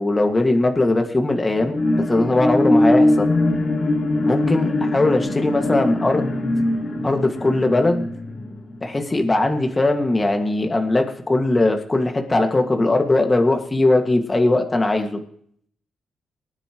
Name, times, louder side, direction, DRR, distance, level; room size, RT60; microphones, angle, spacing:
voice 1, 0.0-3.3 4.2-6.3 7.0-8.0 8.8-15.2, left 2 dB, 25° left, 3 dB, 1.9 m, -20 dB
sound 1, 1.6-9.3 9.8-9.9, left 1 dB, 55° left, 3.0 m, -21 dB
24.0 x 9.7 x 3.1 m, 0.63 s
cardioid pair, 85°, 0 cm